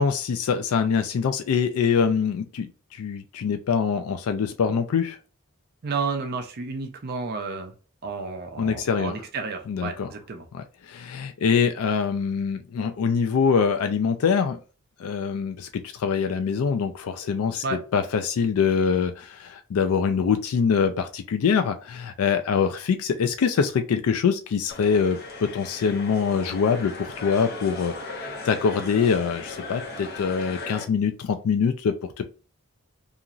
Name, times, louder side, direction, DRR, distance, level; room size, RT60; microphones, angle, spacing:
voice 1, 0.0-5.2 8.6-9.1 9.7-10.1 10.5-14.6 15.0-27.9 28.2-32.2, left 6 dB, 75° left, 7 dB, 0.3 m, -24 dB
voice 2, 5.8-7.7 8.0-10.5 17.6-17.8, right 4 dB, 45° right, 5 dB, 0.5 m, -31 dB
sound 1, 24.7-30.8, left 3 dB, 45° left, 0.8 m, -37 dB
2.9 x 2.5 x 2.4 m, 0.36 s
head